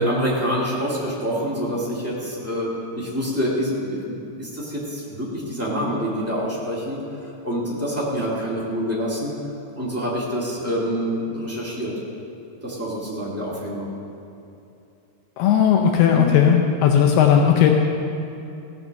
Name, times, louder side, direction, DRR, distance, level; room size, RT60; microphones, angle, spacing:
voice 1, 0.0-9.3 9.7-11.9 12.6-13.9 16.1-16.3, equal, 15° right, -7 dB, 0.4 m, -26 dB
voice 2, 15.4-17.7, left 8 dB, 80° left, 2 dB, 2.6 m, -16 dB
16.5 x 6.5 x 6.5 m, 2.8 s
omnidirectional pair, 4.7 m